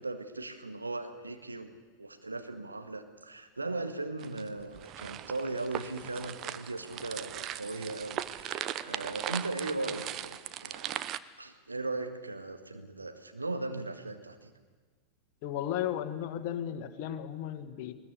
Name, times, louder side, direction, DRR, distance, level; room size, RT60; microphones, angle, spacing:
voice 1, 0.0-1.7 2.0-11.0 11.4-14.5, right 2 dB, 80° right, 7 dB, 1.8 m, -38 dB
sound 1, 4.2-11.2, right 12 dB, 35° right, 0.8 m, -39 dB
voice 2, 15.4-17.9, left 10 dB, 45° left, 9 dB, 1.7 m, -35 dB
21.0 x 20.5 x 8.4 m, 1.4 s
figure-of-eight pair, 90°, 0 cm